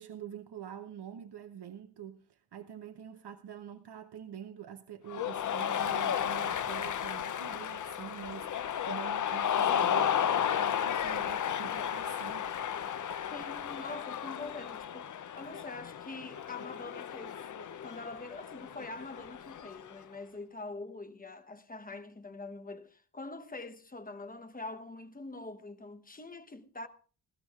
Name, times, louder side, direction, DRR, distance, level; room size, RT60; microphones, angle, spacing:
voice 1, 0.0-12.5, right 9 dB, 75° right, 0.8 m, -46 dB
Cheering, 5.1-19.9, left 9 dB, 50° left, 0.5 m, -33 dB
voice 2, 13.3-17.4 17.8-26.9, left 3 dB, 20° left, 0.9 m, -44 dB
19.5 x 16.0 x 2.4 m
wide cardioid pair, 160°, 41 cm